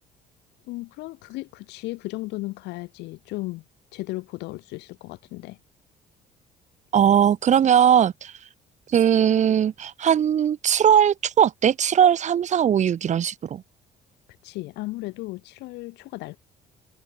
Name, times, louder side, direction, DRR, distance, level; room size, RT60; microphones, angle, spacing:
voice 1, 0.7-3.6 3.9-5.6 14.4-16.4, left 20 dB, 90° left, 4.0 m, -35 dB
voice 2, 6.9-8.3 8.9-13.6, right 9 dB, 45° right, 1.1 m, -19 dB
cardioid pair, 110°, 17 cm